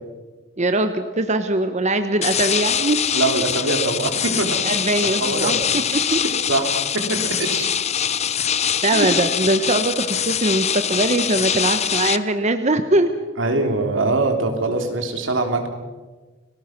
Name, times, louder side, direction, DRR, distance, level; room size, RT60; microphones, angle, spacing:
voice 1, 0.6-3.0 4.6-6.2 8.8-13.1, right 2 dB, 35° right, 9 dB, 1.1 m, -21 dB
sound 1, 2.2-12.2, left 8 dB, 35° left, 0.7 m, -23 dB
voice 2, 3.1-4.6 5.0-5.6 6.5-6.8 7.1-7.7 8.9-9.1 13.4-15.7, right 2 dB, 85° right, 4 dB, 3.4 m, -23 dB
30.0 x 19.5 x 6.0 m, 1.3 s
head